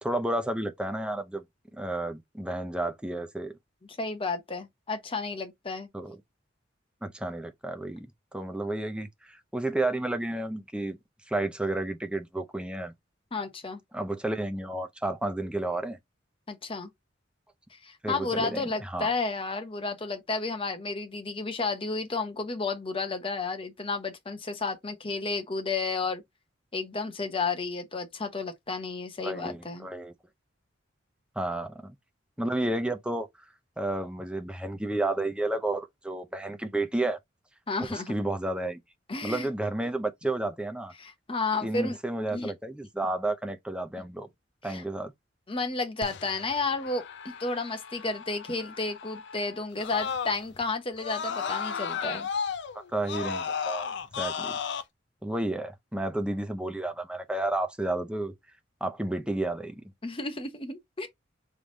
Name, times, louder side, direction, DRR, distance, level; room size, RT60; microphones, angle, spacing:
voice 1, 0.0-1.5 1.7-3.6 5.9-6.2 7.0-8.1 8.3-11.0 11.3-12.9 13.9-16.0 18.0-19.1 29.2-30.1 31.4-32.0 32.4-33.3 33.8-37.2 37.8-38.8 39.2-40.9 41.6-44.3 44.6-45.1 52.7-53.9 54.2-54.6 55.2-58.3 58.8-59.7, right 2 dB, 5° right, 0.6 m, -31 dB
voice 2, 4.0-5.9 13.3-13.8 16.5-16.9 17.7-26.2 26.7-29.9 37.7-38.1 39.1-39.5 41.0-42.0 42.3-42.5 44.6-44.8 45.5-52.3 60.0-61.1, left 3 dB, 30° left, 0.9 m, -32 dB
Screaming, 46.0-50.6 51.0-54.8, left 6 dB, 65° left, 0.5 m, -35 dB
3.5 x 3.2 x 3.9 m
head